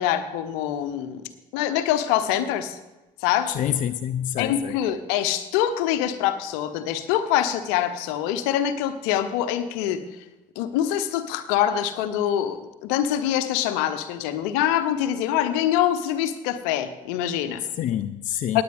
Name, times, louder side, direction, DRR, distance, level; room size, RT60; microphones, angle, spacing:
voice 1, 0.0-2.8 3.2-3.6 4.4-10.0 10.6-17.6 18.5-18.6, left 11 dB, 70° left, 11 dB, 1.0 m, -24 dB
voice 2, 3.5-4.8 17.8-18.6, left 10 dB, 50° left, 12 dB, 0.5 m, -27 dB
18.5 x 8.7 x 3.6 m, 1.1 s
hypercardioid pair, 50°, 17 cm